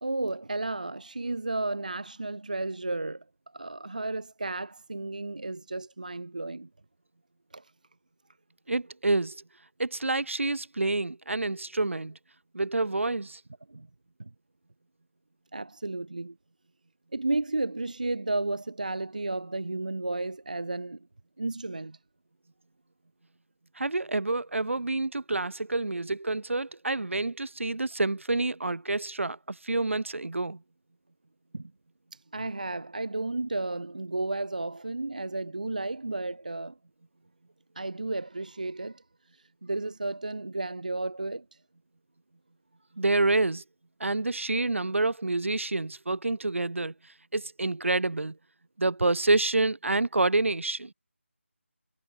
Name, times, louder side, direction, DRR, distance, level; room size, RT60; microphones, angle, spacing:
voice 1, 0.0-3.2 3.5-6.7 7.5-7.7 13.7-13.9 14.2-14.3 15.5-16.4 17.1-21.1 21.4-22.0 31.5-31.7 32.1-36.8 37.8-39.0 39.3-41.5, right 2 dB, 35° right, 0.3 m, -33 dB
voice 2, 8.7-9.4 9.8-12.2 12.5-13.4 23.8-30.6 43.0-43.6 44.0-48.4 48.8-50.9, right 2 dB, 65° right, 1.2 m, -28 dB
figure-of-eight pair, 175°, 7 cm